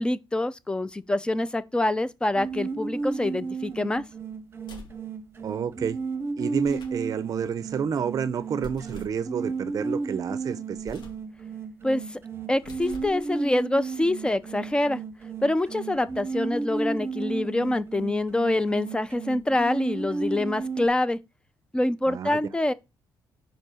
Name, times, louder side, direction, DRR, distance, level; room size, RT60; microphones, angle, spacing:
voice 1, 0.0-4.0 11.8-12.2 12.5-15.0 15.4-21.2 21.7-22.7, left 1 dB, 10° left, 0.5 m, -26 dB
sound 1, 2.3-20.9, right 4 dB, 30° right, 0.9 m, -34 dB
sound 2, 4.6-5.1 6.5-7.1 8.6-9.2 10.8-11.3 12.5-13.2, left 2 dB, 65° left, 2.4 m, -45 dB
voice 2, 5.4-6.0 6.4-11.0 22.1-22.4, right 7 dB, 45° right, 0.6 m, -29 dB
5.4 x 4.5 x 6.3 m
cardioid pair, 130°, 8 cm